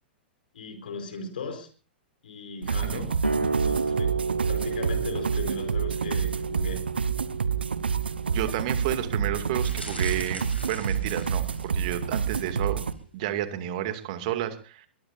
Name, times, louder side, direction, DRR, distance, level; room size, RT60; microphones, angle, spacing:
voice 1, 0.5-1.7 2.2-3.1 3.6-4.1 4.5-6.8, left 4 dB, 60° left, 8 dB, 4.6 m, -37 dB
sound 1, 2.6-12.9, right 6 dB, 70° right, 1.1 m, -29 dB
sound 2, 3.2-10.4, right 4 dB, 85° right, 2.1 m, -32 dB
voice 2, 8.3-12.8 13.1-14.9, right 12 dB, 45° right, 9 dB, 2.4 m, -31 dB
sound 3, 9.6-11.9 12.4-12.7 12.9-13.0, equal, 90° left, 7.8 m, -42 dB
22.0 x 21.0 x 2.7 m, 0.37 s
figure-of-eight pair, 100°, 6 cm